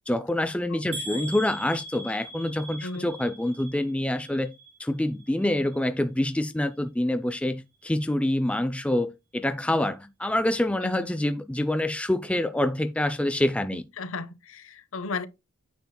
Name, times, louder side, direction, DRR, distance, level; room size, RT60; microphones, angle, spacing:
voice 1, 0.1-4.5 4.8-13.8, left 1 dB, 5° left, 0.3 m, -26 dB
voice 2, 0.7-1.3 2.8-3.1 10.8-11.1 13.7-15.3, left 3 dB, 60° left, 0.7 m, -36 dB
sound 1, 0.9-4.9 5.2-5.8 6.3-6.4 6.7-6.8, equal, 60° right, 2.3 m, -41 dB
9.2 x 7.2 x 2.3 m
head